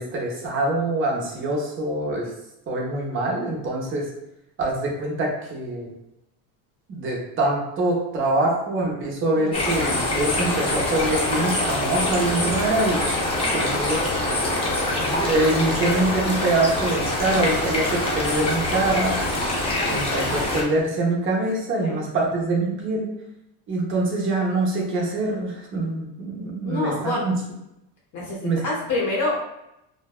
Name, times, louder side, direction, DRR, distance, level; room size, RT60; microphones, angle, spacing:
voice 1, 0.0-2.3 2.7-4.1 4.6-5.9 6.9-13.1 13.5-14.5 15.0-19.2 19.9-23.1 23.7-27.4 28.4-28.6, right 2 dB, 30° right, -1 dB, 0.6 m, -24 dB
sound 1, 9.5-20.6, left 1 dB, 15° left, 0.3 m, -24 dB
voice 2, 13.4-13.7 21.8-22.0 26.6-27.3 28.1-29.4, left 2 dB, 45° left, -4 dB, 0.7 m, -27 dB
2.5 x 2.2 x 2.3 m, 0.84 s
cardioid pair, 130°, 43 cm